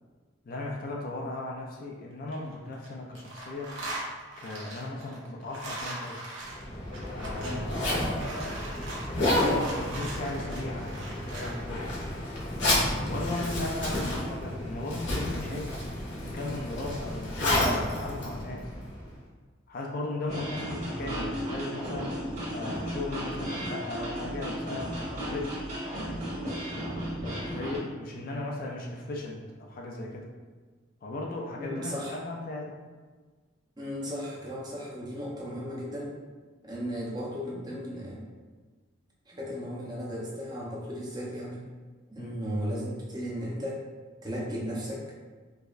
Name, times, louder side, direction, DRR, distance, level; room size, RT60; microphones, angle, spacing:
voice 1, 0.5-3.7 4.4-6.2 7.0-8.6 9.2-11.8 13.0-15.8 16.2-18.7 19.7-22.1 22.5-25.0 25.3-25.6 27.2-30.3 31.0-32.7 42.2-42.3, left 2 dB, 45° left, -1 dB, 0.4 m, -36 dB
sound 1, 2.1-2.9 3.1-11.6, right 1 dB, 70° right, 0.8 m, -40 dB
Zipper (clothing), 6.5-19.1, left 1 dB, 60° left, 1.0 m, -31 dB
sound 2, 20.3-27.8, equal, 35° right, 1.3 m, -34 dB
voice 2, 31.6-32.2 33.8-36.1 36.6-38.2 39.3-41.6 42.1-43.8 44.2-45.0, equal, 20° right, -5 dB, 0.6 m, -35 dB
4.6 x 2.1 x 2.5 m, 1.4 s
head